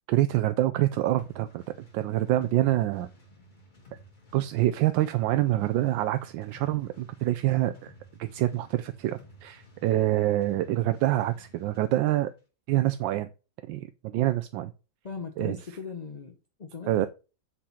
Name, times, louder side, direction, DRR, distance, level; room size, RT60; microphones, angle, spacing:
voice 1, 0.1-1.6 1.9-3.1 4.3-7.9 8.2-12.3 12.7-13.3 13.7-14.7 15.4-15.6 16.9-17.1, right 15 dB, 85° right, 1.3 m, -26 dB
sound 1, 1.2-11.9, equal, 25° left, 1.7 m, -54 dB
voice 2, 15.0-17.1, left 5 dB, 55° left, 0.4 m, -39 dB
7.4 x 4.2 x 5.7 m
omnidirectional pair, 2.0 m